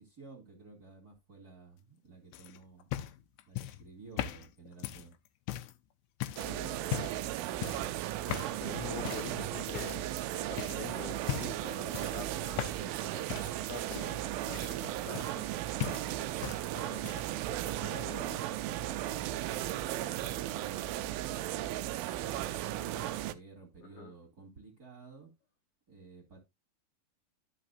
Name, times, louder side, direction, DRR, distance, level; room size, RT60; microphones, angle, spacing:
voice 1, 0.0-2.9 3.5-5.1 17.7-21.6 22.1-25.3 25.9-26.4, right 4 dB, 25° right, 2.7 m, -52 dB
sound 1, 2.3-5.8 6.2-6.5 6.9-7.3 7.6-7.9 8.3-8.6 9.0-9.3 9.7-10.2 10.6-10.8 11.2-11.6 11.9-13.0 13.3-15.5 15.8-16.6 16.9-17.4 18.3-18.4, left 13 dB, 90° left, 2.6 m, -38 dB
voice 2, 6.4-7.0 8.5-15.5 16.7-18.3 23.8-24.1, left 7 dB, 70° left, 2.0 m, -46 dB
sound 2, 6.4-23.3, right 14 dB, 80° right, 2.3 m, -36 dB
12.5 x 5.7 x 2.6 m
omnidirectional pair, 4.4 m